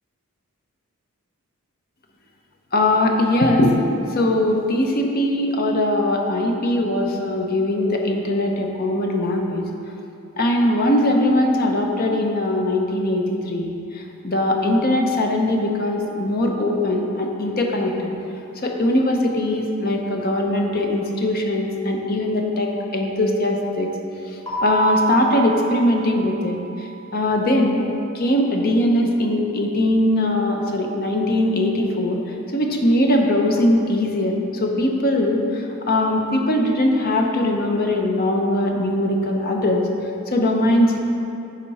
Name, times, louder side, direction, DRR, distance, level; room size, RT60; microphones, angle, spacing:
voice 1, 2.7-3.8 4.1-9.6 10.4-18.1 18.6-23.9 24.6-26.6 27.1-27.8 28.1-32.2 32.5-39.9 40.3-41.0, left 1 dB, 40° left, 2 dB, 0.7 m, -20 dB
Keyboard (musical), 24.5-27.0, right 4 dB, 15° left, 1.6 m, -26 dB
10.0 x 4.3 x 4.2 m, 2.8 s
head